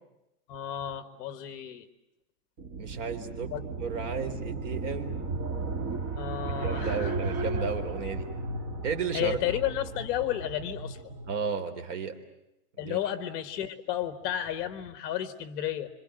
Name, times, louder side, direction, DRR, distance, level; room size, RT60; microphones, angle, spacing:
voice 1, 0.5-1.9 3.5-3.6 6.1-7.1 9.1-11.2 12.8-15.9, left 11 dB, 35° left, 10 dB, 1.7 m, -32 dB
sound 1, 2.6-11.4, right 3 dB, 30° right, 2.9 m, -34 dB
voice 2, 2.8-3.5 3.8-5.2 6.6-8.3 8.8-9.4 11.3-12.2 12.8-13.0, right 5 dB, 50° right, 7 dB, 4.0 m, -33 dB
27.0 x 26.5 x 7.9 m, 0.89 s
supercardioid pair, 165°, 46 cm